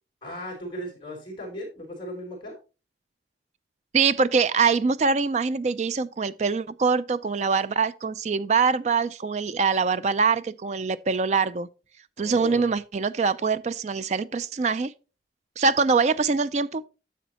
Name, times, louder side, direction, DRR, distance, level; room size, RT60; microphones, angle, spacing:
voice 1, 0.2-2.6 12.2-12.6, left 1 dB, 25° left, 4.2 m, -36 dB
voice 2, 3.9-11.7 12.2-14.9 15.6-16.9, right 5 dB, 40° right, 0.3 m, -24 dB
10.0 x 7.1 x 2.9 m
head